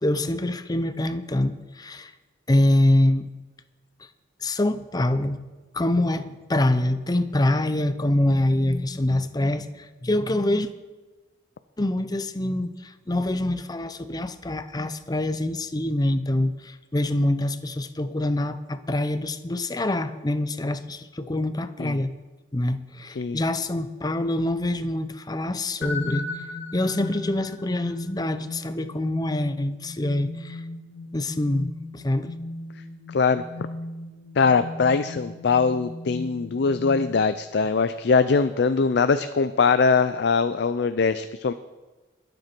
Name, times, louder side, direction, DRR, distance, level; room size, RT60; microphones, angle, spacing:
voice 1, 0.0-2.1 2.5-3.3 4.0-4.1 4.4-5.4 5.7-10.7 11.8-22.1 22.5-26.5 26.7-30.6 31.1-32.3, left 1 dB, 20° left, 11 dB, 0.6 m, -25 dB
sound 1, 25.8-37.5, left 2 dB, 85° left, 2.1 m, -36 dB
voice 2, 33.1-33.4 34.4-41.5, left 5 dB, 65° left, 11 dB, 0.5 m, -22 dB
22.0 x 7.9 x 4.5 m, 1.2 s
head